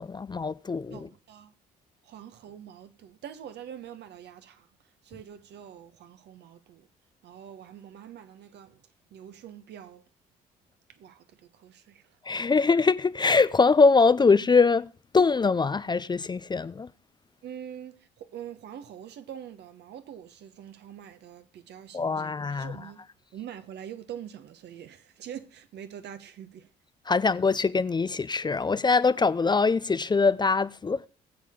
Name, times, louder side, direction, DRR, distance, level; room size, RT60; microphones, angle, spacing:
voice 1, 0.0-1.1 12.3-14.9 15.1-16.9 21.9-22.8 27.1-31.1, left 4 dB, 25° left, 0.5 m, -23 dB
voice 2, 0.9-1.5 2.0-4.7 5.0-6.9 7.2-8.8 9.1-10.0 10.9-12.2 17.4-23.0 23.3-26.7, right 9 dB, 65° right, 1.2 m, -44 dB
20.0 x 7.5 x 3.7 m
hypercardioid pair, 55°, 19 cm